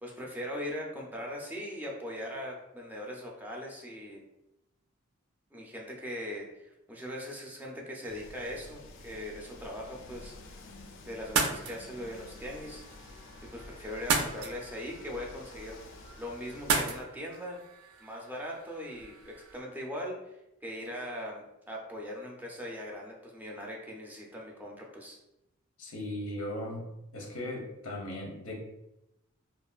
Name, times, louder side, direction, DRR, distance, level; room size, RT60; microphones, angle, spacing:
voice 1, 0.0-4.2 5.5-10.3 11.0-12.8 13.5-15.8 16.2-17.6 18.0-20.2 20.6-25.2, equal, 10° right, -2 dB, 0.4 m, -40 dB
sound 1, 8.1-17.0, left 2 dB, 60° left, 0.4 m, -50 dB
sound 2, 11.2-19.6, right 4 dB, 80° right, 0.4 m, -36 dB
voice 2, 25.8-26.8 27.1-28.5, left 1 dB, 85° left, 0 dB, 0.7 m, -37 dB
2.9 x 2.4 x 2.3 m, 0.89 s
head